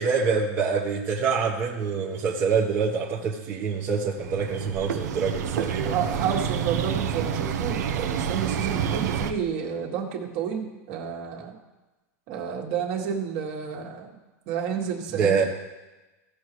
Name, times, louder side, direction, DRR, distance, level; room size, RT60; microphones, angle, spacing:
voice 1, 0.0-6.0 8.7-8.8 15.1-15.4, right 5 dB, 25° right, -4 dB, 1.1 m, -25 dB
sound 1, 4.1-9.3, right 8 dB, 80° right, 0.9 m, -28 dB
voice 2, 5.8-11.6 12.3-14.1 14.5-15.4, right 7 dB, 45° right, 0 dB, 1.8 m, -30 dB
16.5 x 6.5 x 3.1 m, 1.1 s
supercardioid pair, 160°, 9 cm